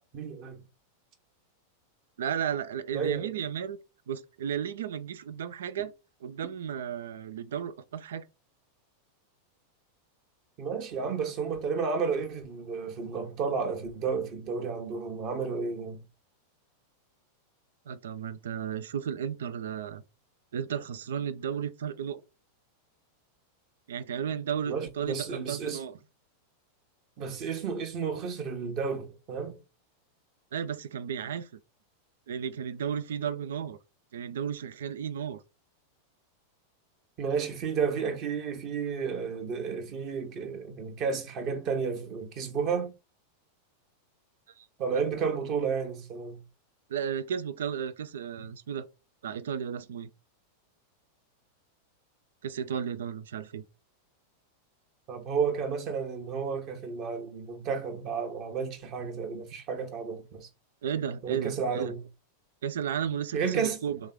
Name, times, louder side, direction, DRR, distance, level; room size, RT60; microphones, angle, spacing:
voice 1, 0.1-0.6 2.9-3.3 10.6-16.0 24.7-25.8 27.2-29.6 37.2-42.9 44.8-46.4 55.1-60.5 61.2-62.0 63.3-63.8, right 5 dB, 40° right, 1.2 m, -32 dB
voice 2, 2.2-3.8 4.1-5.9 6.2-8.2 17.9-20.0 20.5-22.2 23.9-25.9 30.5-31.5 32.3-33.8 34.1-35.4 44.6-44.7 46.9-48.9 49.2-50.1 52.4-53.6 60.8-62.0 62.6-64.0, right 8 dB, 60° right, 0.4 m, -34 dB
3.6 x 3.2 x 3.7 m
figure-of-eight pair, 90°, 0 cm